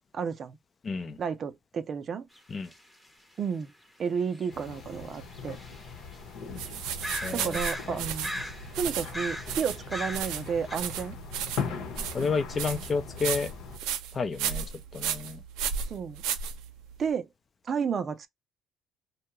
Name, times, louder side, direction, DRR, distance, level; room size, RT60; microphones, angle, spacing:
voice 1, 0.1-0.6 1.2-2.3 3.4-3.7 4.0-5.6 7.3-8.3 8.8-11.2 15.9-16.2 17.0-17.3 17.7-18.3, right 6 dB, 45° right, 0.5 m, -31 dB
voice 2, 0.8-1.2 2.5-2.7 7.2-7.6 12.1-13.5 14.1-14.6 14.9-15.4, left 4 dB, 35° left, 0.5 m, -30 dB
sound 1, 2.3-2.4 2.7-2.8 4.3-6.2 6.7-6.8 7.0-8.8 9.0-10.4 10.7-10.8, equal, 5° left, 0.8 m, -37 dB
sound 2, 4.5-13.8, left 5 dB, 75° left, 0.9 m, -40 dB
sound 3, 6.6-17.0, right 8 dB, 85° right, 0.7 m, -34 dB
2.7 x 2.2 x 3.0 m
cardioid pair, 95°, 0 cm